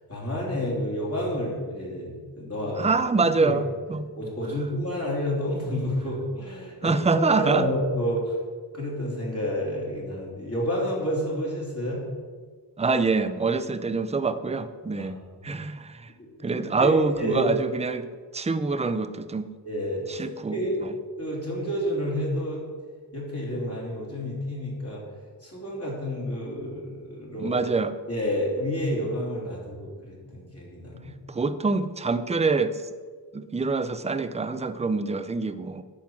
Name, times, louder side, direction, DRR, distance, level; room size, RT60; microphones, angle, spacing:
voice 1, 0.1-2.9 3.2-3.6 4.2-8.2 8.7-12.0 15.0-15.1 15.4-15.6 16.2-17.5 19.6-20.8 21.2-22.6 23.1-25.0 25.4-27.6 28.1-31.2, equal, 35° left, -5 dB, 3.0 m, -30 dB
voice 2, 2.8-4.1 6.8-7.7 12.8-15.2 15.4-16.1 16.4-18.1 18.3-19.5 20.1-20.9 27.4-28.0 31.3-32.8 33.3-35.8, right 4 dB, 15° right, 12 dB, 0.4 m, -25 dB
10.5 x 3.9 x 7.4 m, 1.5 s
wide cardioid pair, 95°, 41 cm